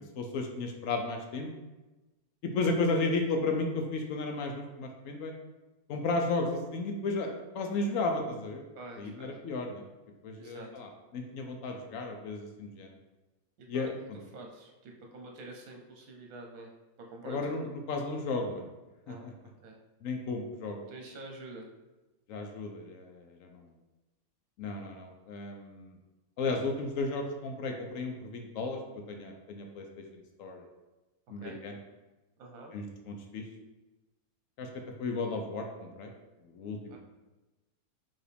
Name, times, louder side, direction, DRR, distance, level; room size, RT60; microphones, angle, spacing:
voice 1, 0.2-1.5 2.4-5.3 5.9-8.6 9.0-9.8 10.2-12.9 13.7-13.9 17.2-18.7 19.1-19.3 20.0-20.8 22.3-23.7 24.6-26.0 26.4-28.8 29.1-29.8 30.1-30.7 31.3-31.7 32.7-33.4 34.6-34.7 35.0-36.1 36.4-37.0, left 3 dB, 70° left, 3 dB, 0.9 m, -34 dB
voice 2, 8.7-9.4 10.4-10.7 13.6-13.9 14.3-16.7 17.0-17.7 19.1-19.3 19.6-19.8 20.9-21.7 31.4-31.6 32.4-32.8 36.9-37.0, right 2 dB, 70° right, 1 dB, 1.2 m, -47 dB
4.7 x 3.1 x 3.3 m, 1.1 s
omnidirectional pair, 1.6 m